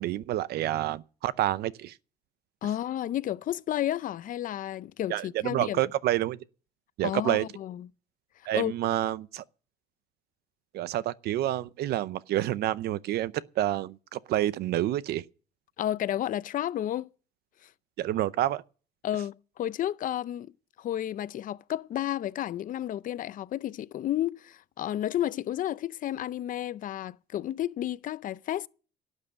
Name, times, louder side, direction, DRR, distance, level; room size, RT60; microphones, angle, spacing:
voice 1, 0.0-2.0 5.1-6.4 7.0-7.5 8.4-9.4 10.7-15.3 18.0-18.6, right 13 dB, 70° right, 0.7 m, -28 dB
voice 2, 2.6-5.8 7.0-7.9 8.5-8.7 15.8-17.1 17.6-17.7 19.0-20.5 20.8-28.7, left 12 dB, 55° left, 0.5 m, -32 dB
12.5 x 8.2 x 8.4 m
cardioid pair, 110°, 17 cm